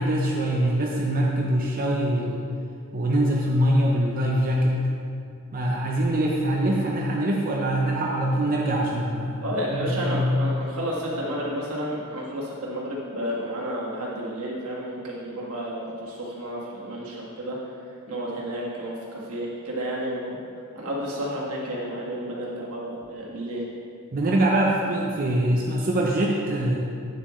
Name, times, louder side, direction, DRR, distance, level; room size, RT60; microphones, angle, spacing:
voice 1, 0.0-2.4 2.9-4.8 5.5-9.4 9.7-10.3 24.1-26.8, right 1 dB, 40° right, -2 dB, 0.6 m, -23 dB
voice 2, 9.4-17.6 18.1-20.4 20.8-23.6, equal, 75° right, -4 dB, 1.6 m, -31 dB
8.6 x 7.3 x 3.1 m, 2.4 s
head